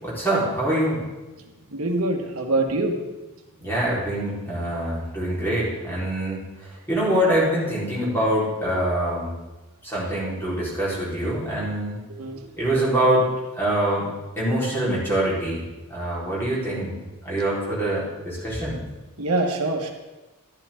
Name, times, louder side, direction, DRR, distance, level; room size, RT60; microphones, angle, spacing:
voice 1, 0.0-1.0 3.6-6.4 6.9-9.4 9.8-12.0 12.6-13.3 13.6-14.1 14.4-16.9 17.2-18.8, right 1 dB, 10° left, -7 dB, 4.1 m, -24 dB
voice 2, 1.7-3.0 12.1-12.4 19.2-19.9, right 2 dB, 80° right, 3 dB, 1.6 m, -24 dB
11.5 x 11.5 x 3.7 m, 1.1 s
head